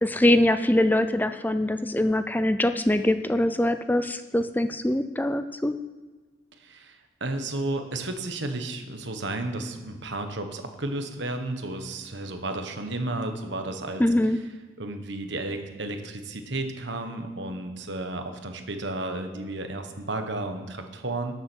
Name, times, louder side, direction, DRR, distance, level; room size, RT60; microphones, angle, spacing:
voice 1, 0.0-5.7 14.0-14.4, left 1 dB, 10° left, 10 dB, 0.4 m, -23 dB
voice 2, 6.6-14.0 14.8-21.3, right 2 dB, 60° right, 6 dB, 1.3 m, -33 dB
12.5 x 7.4 x 6.3 m, 1.4 s
head